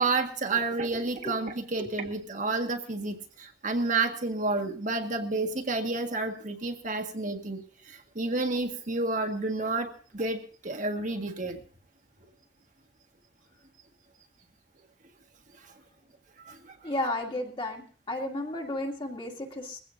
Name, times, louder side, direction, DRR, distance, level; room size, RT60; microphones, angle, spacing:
voice 1, 0.0-7.6 7.9-11.6 16.5-16.8, right 3 dB, 45° right, 4 dB, 1.8 m, -30 dB
voice 2, 16.8-17.8 18.1-19.8, left 1 dB, 30° left, 1 dB, 2.5 m, -32 dB
21.5 x 16.0 x 2.7 m, 0.42 s
head